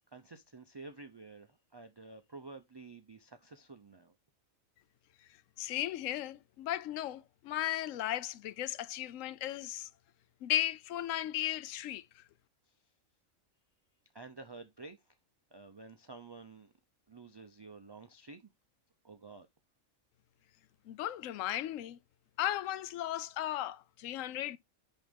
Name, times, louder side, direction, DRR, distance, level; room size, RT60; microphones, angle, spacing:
voice 1, 0.1-4.1 14.1-15.0 15.5-16.7 17.1-18.4 19.0-19.5, right 3 dB, 35° right, 0.4 m, -50 dB
voice 2, 5.6-9.9 10.4-12.2 20.9-22.0 22.4-24.6, left 13 dB, 80° left, 1.0 m, -36 dB
10.5 x 3.8 x 3.6 m
omnidirectional pair, 1.4 m